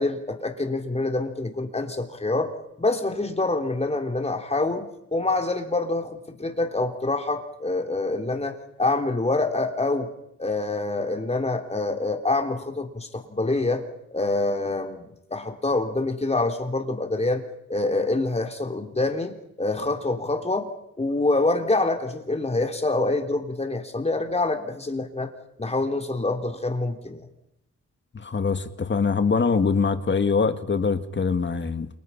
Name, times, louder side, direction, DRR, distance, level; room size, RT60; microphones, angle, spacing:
voice 1, 0.0-2.5 2.8-10.1 10.4-13.8 14.1-15.0 15.3-17.4 17.7-20.7 21.0-25.3 25.6-27.3, left 2 dB, 20° left, 3.5 m, -26 dB
voice 2, 28.1-31.9, left 5 dB, 40° left, 1.7 m, -23 dB
29.0 x 28.5 x 5.9 m
wide cardioid pair, 125°, 30 cm